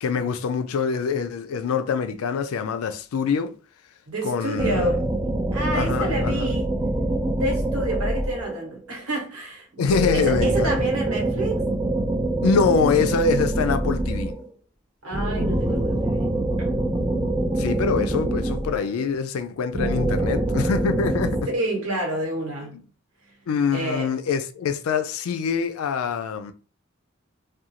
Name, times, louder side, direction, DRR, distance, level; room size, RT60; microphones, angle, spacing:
voice 1, 0.0-3.6 4.2-4.9 5.7-6.5 9.8-10.7 12.4-14.4 17.5-21.5 23.5-26.5, left 5 dB, 90° left, 0.4 m, -24 dB
voice 2, 4.1-5.0 5.5-6.7 7.3-11.6 15.0-16.3 16.6-16.8 21.5-22.8 23.7-24.1, right 1 dB, 85° right, 1.2 m, -29 dB
sound 1, 4.6-8.7 9.8-14.5 15.1-19.1 19.7-21.4, right 1 dB, 15° right, 0.4 m, -25 dB
2.5 x 2.3 x 2.8 m
head